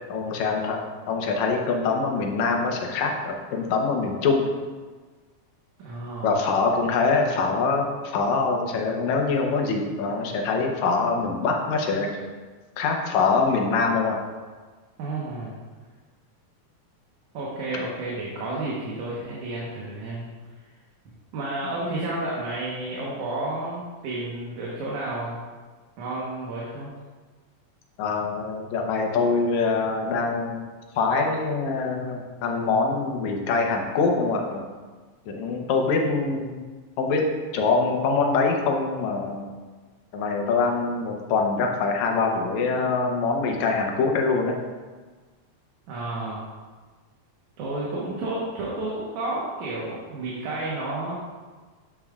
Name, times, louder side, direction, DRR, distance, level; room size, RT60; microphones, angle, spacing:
voice 1, 0.1-0.8 1.1-4.5 6.2-12.1 12.8-14.2 28.0-30.6 31.0-34.7 35.3-36.6 37.0-37.3 37.5-39.4 40.1-44.6, left 4 dB, 75° left, 2 dB, 2.0 m, -24 dB
voice 2, 5.8-6.4 15.0-15.5 17.3-20.3 21.3-25.4 26.0-26.9 45.9-46.4 47.6-51.1, right 2 dB, 75° right, -6 dB, 2.5 m, -31 dB
8.3 x 7.4 x 2.3 m, 1.4 s
omnidirectional pair, 3.5 m